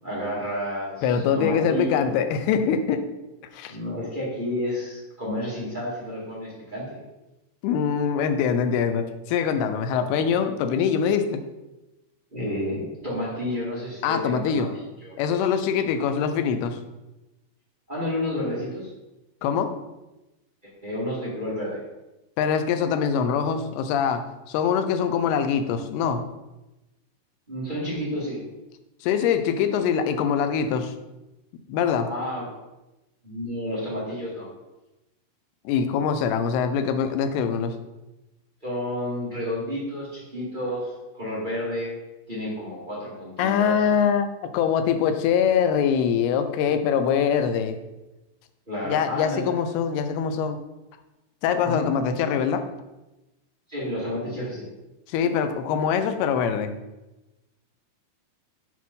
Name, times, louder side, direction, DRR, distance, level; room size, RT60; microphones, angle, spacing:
voice 1, 0.0-2.0 3.7-7.0 12.3-15.1 17.9-18.9 20.6-21.8 27.5-28.4 32.0-32.5 33.2-34.5 38.6-41.9 42.3-43.8 48.7-49.5 51.6-52.2 53.7-54.7, left 1 dB, 15° right, -7 dB, 1.8 m, -31 dB
voice 2, 1.0-3.1 3.5-3.8 7.6-11.4 14.0-14.7 15.2-16.8 19.4-19.8 22.4-26.2 29.0-30.9 31.7-32.1 35.7-37.8 43.4-47.8 48.8-50.6 51.4-52.7 55.1-56.8, left 7 dB, 90° left, 8 dB, 2.7 m, -23 dB
8.5 x 4.6 x 5.5 m, 1.0 s
omnidirectional pair, 4.4 m